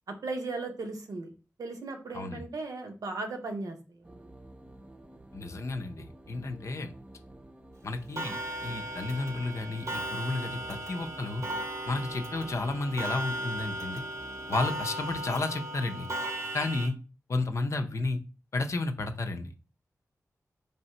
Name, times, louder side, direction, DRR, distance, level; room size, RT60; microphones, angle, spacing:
voice 1, 0.1-1.3 1.6-4.3, right 3 dB, 85° right, 4 dB, 0.8 m, -37 dB
sound 1, 4.0-15.3, right 1 dB, 20° right, 0.5 m, -51 dB
voice 2, 5.3-6.9 7.8-11.4 11.9-14.0 14.5-16.1 16.5-17.0 17.3-18.2 18.5-19.5, left 2 dB, 55° left, 6 dB, 0.5 m, -32 dB
Clock, 8.2-16.9, right 1 dB, 55° right, 0.7 m, -36 dB
3.3 x 2.8 x 4.2 m, 0.35 s
wide cardioid pair, 80°, 6 cm